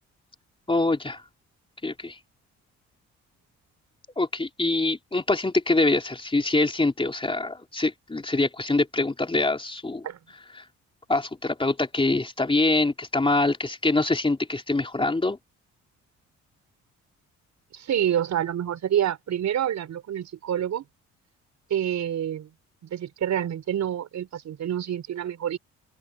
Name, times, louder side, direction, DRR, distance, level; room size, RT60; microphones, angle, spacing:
voice 1, 0.7-1.2 1.8-2.2 4.2-10.1 10.6-10.7 11.1-15.4, left 2 dB, 15° left, 3.6 m, -24 dB
voice 2, 17.7-20.8 21.7-22.5 22.8-25.6, right 10 dB, 65° right, 4.9 m, -27 dB
open air
cardioid pair, 90°, 30 cm